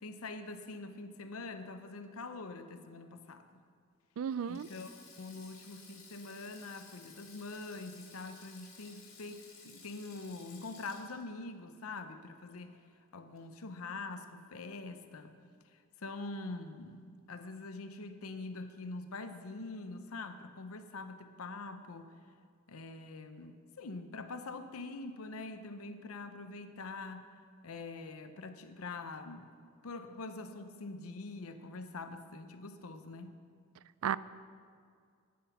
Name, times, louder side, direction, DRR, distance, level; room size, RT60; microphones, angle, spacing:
voice 1, 0.0-3.5 4.5-12.8 13.1-15.3 15.7-22.1 22.7-27.3 27.6-29.5 29.8-33.4, left 3 dB, 90° left, 9 dB, 0.7 m, -44 dB
voice 2, 4.2-4.7 34.0-34.2, right 8 dB, 75° right, 17 dB, 0.4 m, -33 dB
Sink (filling or washing), 4.4-12.9 13.1-13.4 14.5-14.8, left 4 dB, 70° left, 2.8 m, -56 dB
10.5 x 10.5 x 5.8 m, 2.2 s
head